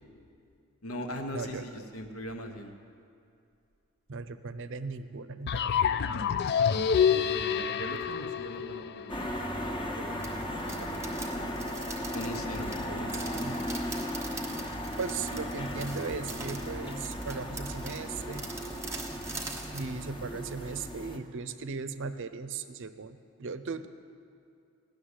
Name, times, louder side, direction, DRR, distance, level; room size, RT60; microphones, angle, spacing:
voice 1, 0.8-2.7 7.3-10.2 10.7-11.6 12.1-13.7, equal, 70° left, 5 dB, 1.2 m, -41 dB
voice 2, 1.3-1.6 4.1-6.1 12.8-13.6 15.0-18.5 19.7-23.9, right 4 dB, 60° right, 12 dB, 0.6 m, -38 dB
sound 1, 5.5-9.4, left 7 dB, 50° left, 0.4 m, -27 dB
sound 2, 9.1-21.2, equal, 20° left, 1.1 m, -36 dB
sound 3, 10.2-19.9, right 3 dB, 15° right, 1.2 m, -44 dB
16.5 x 6.7 x 9.8 m, 2.5 s
head